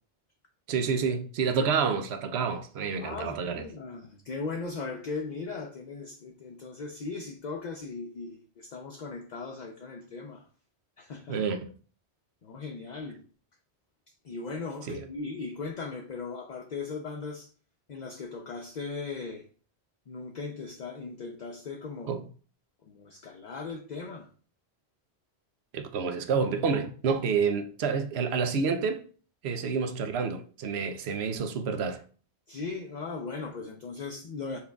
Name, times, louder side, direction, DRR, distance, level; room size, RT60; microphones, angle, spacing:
voice 1, 0.7-3.6 11.3-11.7 14.9-15.0 22.1-22.2 25.7-29.0 29.4-32.0, right 5 dB, 75° right, 0.9 m, -29 dB
voice 2, 3.0-10.5 11.0-11.4 12.4-13.2 14.2-17.5 17.9-19.4 20.1-22.2 22.9-24.3 32.5-34.6, left 4 dB, 50° left, 0.6 m, -38 dB
5.8 x 3.6 x 2.3 m
omnidirectional pair, 1.1 m